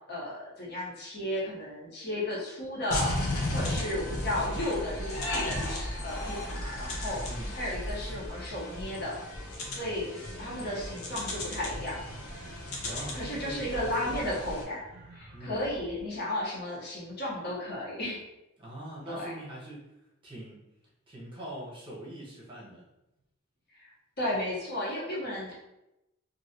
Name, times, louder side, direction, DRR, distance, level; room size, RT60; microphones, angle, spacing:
voice 1, 0.1-7.2 7.5-9.2 9.7-12.0 12.8-18.2 19.1-19.3 23.7-23.9 24.2-25.5, left 1 dB, 50° left, -6 dB, 1.0 m, -34 dB
sound 1, 2.9-14.6, left 1 dB, 80° left, 0.7 m, -35 dB
voice 2, 7.2-7.6 12.9-14.2 15.3-15.6 18.6-19.9 20.2-20.7 21.1-22.9, right 1 dB, 25° right, -5 dB, 0.8 m, -42 dB
sound 2, 10.3-16.0, right 1 dB, 55° right, 0.6 m, -48 dB
3.1 x 2.6 x 2.7 m, 0.92 s
head